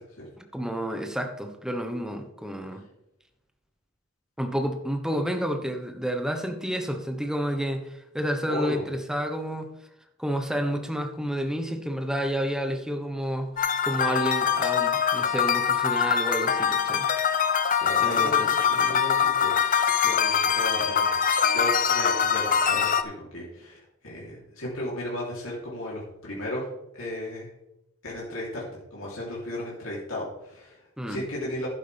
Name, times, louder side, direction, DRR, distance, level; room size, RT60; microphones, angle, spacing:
voice 1, 0.4-2.8 4.4-9.7 10.2-17.1 18.0-18.5 18.8-19.0 31.0-31.2, equal, 5° right, 5 dB, 1.1 m, -30 dB
voice 2, 8.5-8.8 17.8-19.5 20.0-21.2 21.5-27.5 28.0-28.6 28.9-30.8 31.1-31.7, left 1 dB, 70° left, -5 dB, 3.4 m, -34 dB
sound 1, 13.6-23.0, left 7 dB, 40° left, 0.6 m, -23 dB
11.0 x 9.9 x 3.5 m, 0.84 s
head